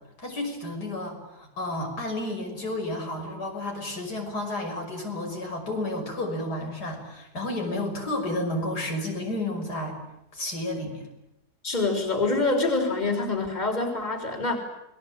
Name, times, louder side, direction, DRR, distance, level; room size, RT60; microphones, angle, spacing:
voice 1, 0.2-10.0 10.3-11.0, left 1 dB, 80° left, 2 dB, 6.4 m, -31 dB
voice 2, 11.6-14.6, left 3 dB, 25° left, 4 dB, 3.9 m, -25 dB
29.0 x 20.5 x 8.8 m, 0.85 s
omnidirectional pair, 1.7 m